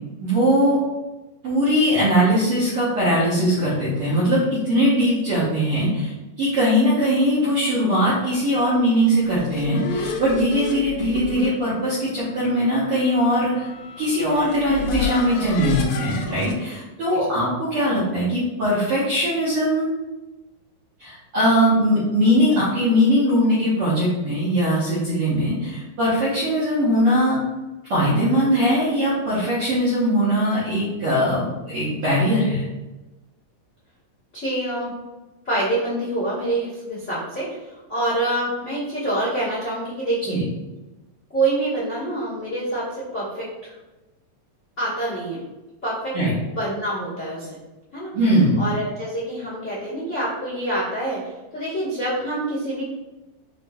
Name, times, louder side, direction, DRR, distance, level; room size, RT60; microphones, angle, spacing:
voice 1, 0.2-0.8 1.4-13.7 14.0-19.9 21.0-27.5 27.9-32.7 40.3-40.4 46.1-46.3 48.1-48.6, equal, 70° right, -10 dB, 1.4 m, -20 dB
sound 1, 9.0-16.6, left 4 dB, 85° left, 1.6 m, -32 dB
voice 2, 34.3-34.9 35.4-40.4 41.3-42.9 43.1-43.7 44.8-45.4 45.8-46.1 46.4-47.6 47.9-48.1 48.6-52.8, right 1 dB, 60° left, -10 dB, 0.7 m, -26 dB
5.6 x 2.6 x 2.3 m, 1.1 s
omnidirectional pair, 3.8 m